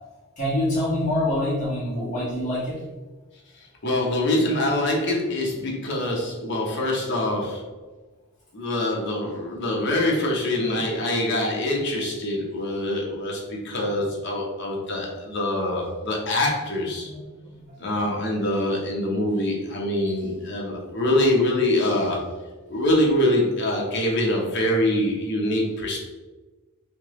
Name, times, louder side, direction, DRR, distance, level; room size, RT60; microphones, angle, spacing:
voice 1, 0.4-2.8 9.8-9.9 13.7-13.8 17.0-17.2 17.5-17.7, left 1 dB, 35° left, -9 dB, 1.4 m, -26 dB
voice 2, 3.8-7.7 8.5-17.1 17.8-22.2 22.7-26.1, left 1 dB, 50° left, -1 dB, 0.8 m, -24 dB
3.3 x 2.8 x 3.0 m, 1.2 s
head